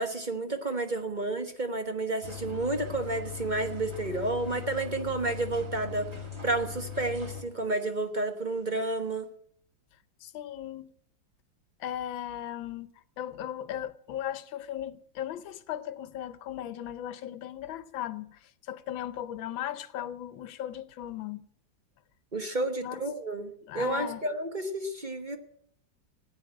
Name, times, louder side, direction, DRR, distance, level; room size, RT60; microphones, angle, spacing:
voice 1, 0.0-6.1 6.4-9.3 22.3-25.4, right 2 dB, 30° right, 1.0 m, -31 dB
sound 1, 2.2-7.4, left 7 dB, 15° right, 2.4 m, -40 dB
voice 2, 10.2-10.9 11.8-12.9 13.2-21.4 22.8-23.0 23.7-24.2, left 11 dB, 85° left, 1.6 m, -37 dB
15.5 x 9.2 x 8.7 m
omnidirectional pair, 2.1 m